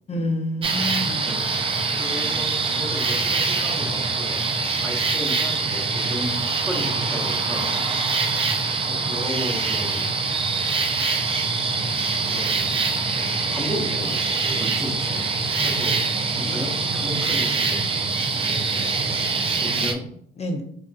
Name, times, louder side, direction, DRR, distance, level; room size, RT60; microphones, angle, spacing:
voice 1, 0.1-1.4 15.6-15.8 16.4-16.7 20.4-20.6, left 1 dB, 35° left, 4 dB, 0.6 m, -29 dB
sound 1, 0.6-19.9, right 4 dB, 30° right, 0.4 m, -24 dB
voice 2, 1.9-4.4 4.8-7.7 8.9-10.1 11.7-15.3 15.6-20.1, equal, 5° right, -1 dB, 0.9 m, -34 dB
4.0 x 2.3 x 2.3 m, 0.65 s
cardioid pair, 90°, 20 cm